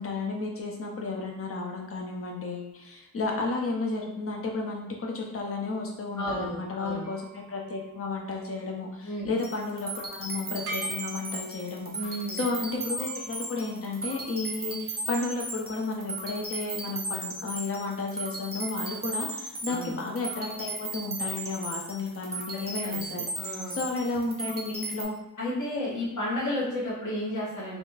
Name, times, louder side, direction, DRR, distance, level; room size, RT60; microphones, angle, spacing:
voice 1, 0.0-11.9 12.3-23.3 23.7-25.2, left 3 dB, 40° left, 0 dB, 0.6 m, -32 dB
voice 2, 6.2-7.0 9.0-9.3 11.9-12.4 19.7-19.9 22.8-23.0 23.3-23.8 25.4-27.8, left 1 dB, 60° left, -10 dB, 1.2 m, -32 dB
sound 1, 7.0-8.7 10.7-11.9 13.0-14.5, right 2 dB, 80° right, 0.8 m, -44 dB
sound 2, 9.4-25.0, right 2 dB, 30° right, 0.6 m, -36 dB
3.5 x 2.4 x 2.6 m, 0.96 s
wide cardioid pair, 145°, 35 cm